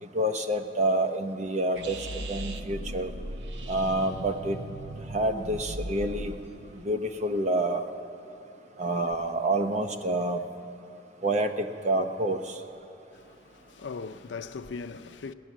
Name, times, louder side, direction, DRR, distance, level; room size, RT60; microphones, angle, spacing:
voice 1, 0.0-3.1 3.7-4.6 5.1-6.3 6.8-7.8 8.8-10.4 11.2-12.6, right 1 dB, 40° right, 0.8 m, -28 dB
sound 1, 1.7-6.8, right 1 dB, 75° right, 0.7 m, -38 dB
voice 2, 13.1-15.3, left 4 dB, 80° left, 0.5 m, -39 dB
17.5 x 11.0 x 7.3 m
head